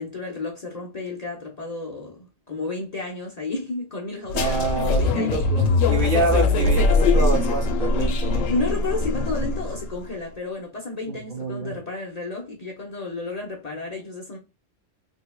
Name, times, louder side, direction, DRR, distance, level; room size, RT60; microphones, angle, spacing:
voice 1, 0.0-5.4 8.4-14.4, left 3 dB, 40° left, 0.6 m, -32 dB
sound 1, 4.3-9.9, left 3 dB, 90° left, 1.1 m, -21 dB
voice 2, 4.3-8.5 11.1-11.8, right 3 dB, 50° right, 0.7 m, -27 dB
3.6 x 3.2 x 2.2 m
omnidirectional pair, 1.3 m